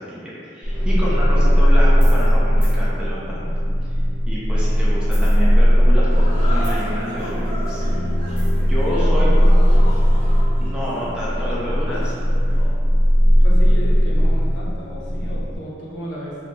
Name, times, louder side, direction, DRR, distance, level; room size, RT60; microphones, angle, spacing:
voice 1, 0.1-3.5 4.3-7.8 8.4-9.5 10.6-12.1, equal, 5° right, -8 dB, 0.4 m, -29 dB
sound 1, 0.6-15.6, equal, 75° right, 0.7 m, -17 dB
voice 2, 0.8-1.6 8.9-10.1 13.4-16.4, equal, 70° left, -5 dB, 0.5 m, -33 dB
sound 2, 1.9-2.3 2.6-2.8 5.0-5.9 6.2-7.0 8.4-8.7, left 1 dB, 25° left, 0.9 m, -40 dB
sound 3, 6.1-12.8, equal, 40° right, 0.9 m, -36 dB
2.7 x 2.2 x 3.0 m, 2.5 s
head